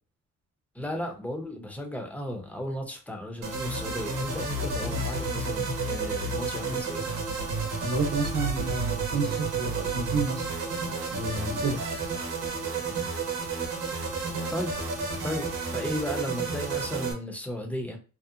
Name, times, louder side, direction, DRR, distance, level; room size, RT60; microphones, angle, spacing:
voice 1, 0.7-7.1 14.5-14.8 15.2-18.0, equal, 5° left, 0.6 m, -35 dB
sound 1, 3.4-17.1, right 3 dB, 85° right, 0.8 m, -31 dB
voice 2, 7.8-10.4 11.1-11.8, right 3 dB, 55° right, 0.8 m, -30 dB
2.8 x 2.0 x 2.4 m
cardioid pair, 90°, 30 cm